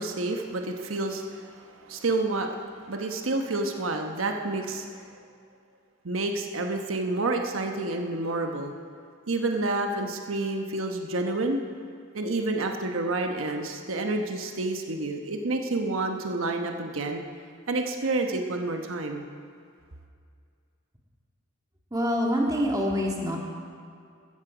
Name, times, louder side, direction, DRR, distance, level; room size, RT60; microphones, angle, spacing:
voice 1, 0.0-5.0 6.0-8.7 9.3-11.6 12.1-17.2 17.7-19.3, right 2 dB, 85° right, 3 dB, 1.1 m, -29 dB
voice 2, 21.9-23.4, equal, 20° right, -1 dB, 1.9 m, -25 dB
14.5 x 14.0 x 5.0 m, 2.3 s
head